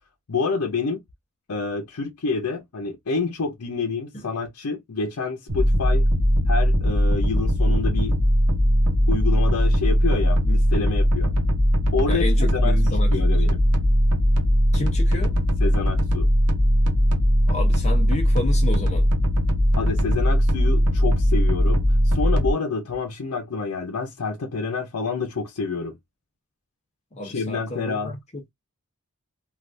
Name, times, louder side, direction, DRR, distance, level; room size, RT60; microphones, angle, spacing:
voice 1, 0.3-1.0 1.5-6.1 6.5-8.1 9.1-11.3 11.9-12.8 13.1-13.6 15.6-16.3 19.8-26.0 27.2-28.2, left 4 dB, 85° left, 0.7 m, -28 dB
sound 1, 5.5-22.5, equal, 85° right, 0.9 m, -19 dB
voice 2, 12.1-13.4 14.7-15.4 17.5-19.1 27.1-28.2, left 1 dB, 30° left, 0.7 m, -31 dB
3.2 x 2.4 x 2.6 m
head